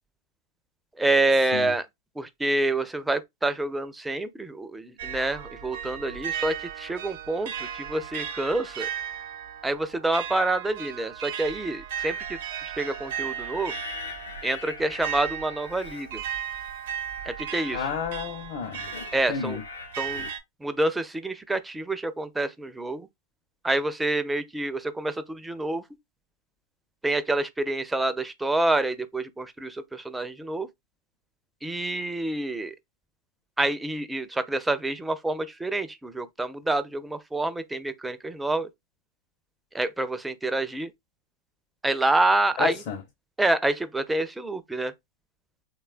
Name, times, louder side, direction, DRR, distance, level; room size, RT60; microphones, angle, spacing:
voice 1, 1.0-1.9 2.2-8.9 9.6-12.4 12.7-13.7 14.4-16.2 17.3-17.8 19.1-19.6 20.0-20.3 20.6-23.1 23.6-25.8 27.0-30.7 31.6-32.8 33.6-38.7 39.7-40.9 41.8-42.8 43.4-44.9, right 2 dB, 5° right, 0.4 m, -27 dB
sound 1, 5.0-20.4, right 9 dB, 70° right, 0.6 m, -36 dB
sound 2, 11.9-20.3, left 5 dB, 90° left, 0.7 m, -43 dB
voice 2, 17.7-18.8 19.3-19.6 42.6-43.0, left 7 dB, 55° left, 0.6 m, -31 dB
3.1 x 2.2 x 2.4 m
hypercardioid pair, 115°, 0 cm